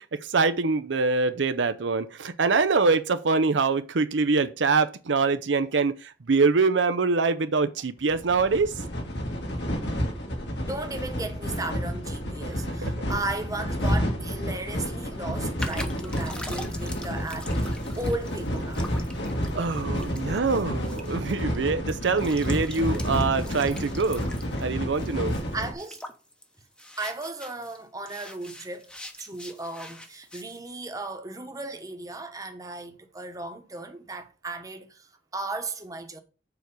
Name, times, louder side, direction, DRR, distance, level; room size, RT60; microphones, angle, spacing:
voice 1, 0.0-8.7 12.8-12.9 19.5-24.3 24.6-25.3, right 4 dB, 80° right, 0.6 m, -24 dB
sound 1, 8.1-25.7, equal, 65° left, 2.0 m, -30 dB
voice 2, 10.6-18.8 25.5-26.0 27.0-36.2, right 2 dB, 20° right, 1.1 m, -36 dB
sound 2, 15.6-27.8 28.1-30.6, left 1 dB, 5° left, 0.9 m, -43 dB
7.0 x 4.6 x 6.7 m
head